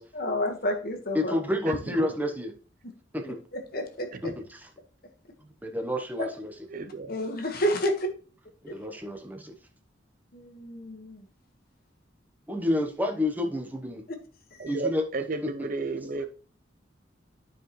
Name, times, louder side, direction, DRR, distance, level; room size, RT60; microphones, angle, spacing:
voice 1, 0.1-1.3 3.5-4.1 6.2-6.3 7.1-8.1 8.7-8.8 10.3-11.2 14.5-14.7, equal, 50° left, 1.4 m, -30 dB
voice 2, 1.1-2.5 3.1-3.4 4.2-4.7 5.6-6.5 8.6-9.5 12.5-14.1 14.7-15.1 15.4-15.7 16.2-16.3, left 1 dB, 10° right, 0.9 m, -29 dB
voice 3, 6.7-7.1 14.6-16.3, right 3 dB, 45° right, 0.7 m, -32 dB
11.5 x 4.8 x 3.1 m
head